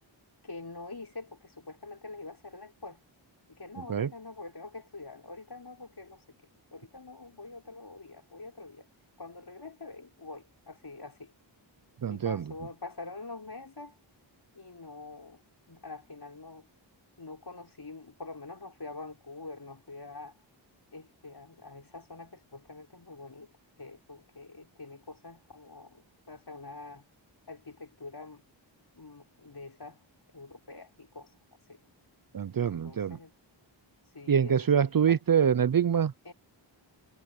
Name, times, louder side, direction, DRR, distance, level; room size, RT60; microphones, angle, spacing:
voice 1, 0.4-3.0 3.5-6.2 6.7-8.9 9.2-11.3 12.1-14.0 14.5-15.4 15.7-16.7 17.2-20.3 20.9-23.5 23.8-27.0 27.5-28.4 28.9-30.0 30.3-31.3 31.7-31.8 32.6-33.3 34.1-34.7 35.1-35.2 36.2-36.3, left 3 dB, 55° left, 6.0 m, -45 dB
voice 2, 12.0-12.4 32.3-33.2 34.3-36.1, right 8 dB, 50° right, 0.6 m, -25 dB
wide cardioid pair, 60°, 46 cm